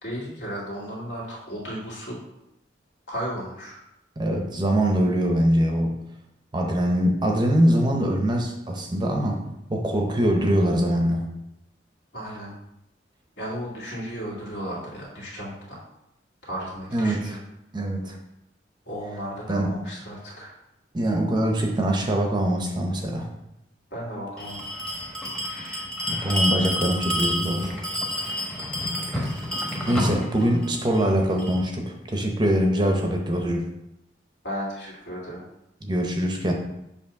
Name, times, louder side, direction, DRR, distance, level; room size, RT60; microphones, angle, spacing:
voice 1, 0.0-2.2 3.1-3.8 12.1-12.5 13.4-15.9 16.4-17.4 18.9-20.5 23.9-24.6 34.4-35.5, equal, 65° left, -5 dB, 2.4 m, -34 dB
voice 2, 4.2-6.0 6.5-9.4 9.7-11.3 16.9-17.4 17.7-18.2 19.5-19.7 20.9-23.3 26.1-27.7 29.9-33.7 35.8-36.5, equal, 25° right, 2 dB, 0.7 m, -23 dB
Bell, 24.4-31.6, equal, 5° left, 1.0 m, -29 dB
7.1 x 2.8 x 5.7 m, 0.86 s
head